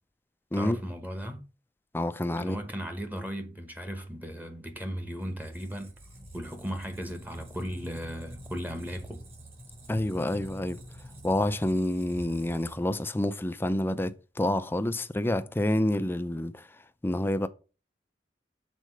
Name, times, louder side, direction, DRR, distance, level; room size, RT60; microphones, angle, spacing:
voice 1, 0.5-1.4 2.4-5.9 6.3-9.2, equal, 10° right, 1.1 m, -36 dB
voice 2, 1.9-2.6 9.9-10.8 11.2-16.7 17.0-17.5, left 1 dB, 15° left, 0.5 m, -28 dB
Squeak, 5.2-13.1, equal, 35° right, 2.3 m, -47 dB
6.5 x 4.2 x 6.3 m
head